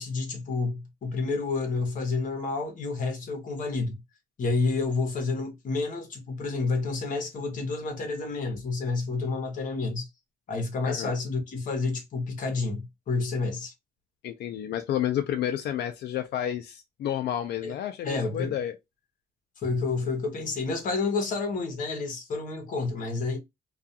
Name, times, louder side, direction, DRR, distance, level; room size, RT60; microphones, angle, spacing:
voice 1, 0.0-3.9 4.4-10.1 10.5-13.7 17.6-17.7 18.0-18.5 19.6-23.4, left 3 dB, 50° left, 0.9 m, -29 dB
voice 2, 14.2-18.7, left 11 dB, 85° left, 0.4 m, -30 dB
2.4 x 2.3 x 2.7 m
wide cardioid pair, 160°, 17 cm